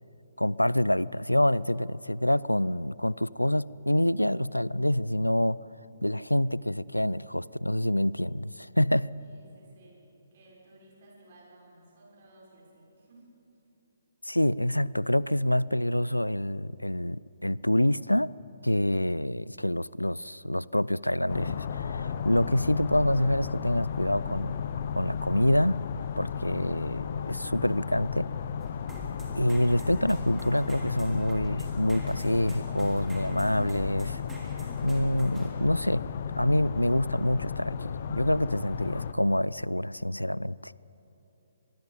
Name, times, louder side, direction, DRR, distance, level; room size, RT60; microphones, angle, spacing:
voice 1, 0.4-5.6 6.0-9.1 14.2-18.3 18.6-24.6 24.9-25.8 26.2-28.3 29.4-34.2 34.8-36.0 36.4-40.7, left 1 dB, 90° left, 22 dB, 0.4 m, -26 dB
voice 2, 9.2-10.0 10.3-13.3, right 1 dB, 45° right, -3 dB, 6.4 m, -56 dB
sound 1, 21.3-39.1, left 7 dB, 45° left, 1.0 m, -34 dB
sound 2, 28.6-35.5, right 3 dB, 10° right, 3.3 m, -44 dB
24.0 x 21.5 x 5.2 m, 3.0 s
figure-of-eight pair, 130°, 0 cm